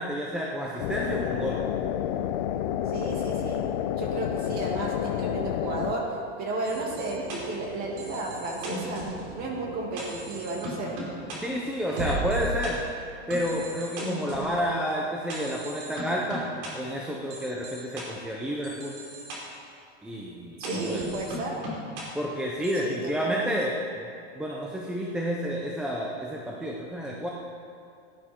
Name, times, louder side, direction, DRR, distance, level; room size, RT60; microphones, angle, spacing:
voice 1, 0.0-1.6 11.4-12.8 13.3-16.5 16.7-19.0 20.0-21.1 22.1-23.7 24.3-27.3, equal, 5° right, -3 dB, 0.5 m, -30 dB
sound 1, 0.8-5.9, left 10 dB, 45° left, 0.6 m, -29 dB
voice 2, 2.9-3.6 4.0-6.1 6.4-9.1 9.3-11.0 11.8-12.2 20.6-21.6 22.8-23.7, right 2 dB, 30° right, -1 dB, 2.2 m, -33 dB
sound 2, 6.6-12.7 13.3-14.6 15.3-16.7 17.3-18.0 18.6-19.4 20.6-22.0 22.6-22.8, right 1 dB, 55° right, 3.7 m, -36 dB
17.0 x 10.5 x 4.3 m, 2.4 s
supercardioid pair, 165°, 32 cm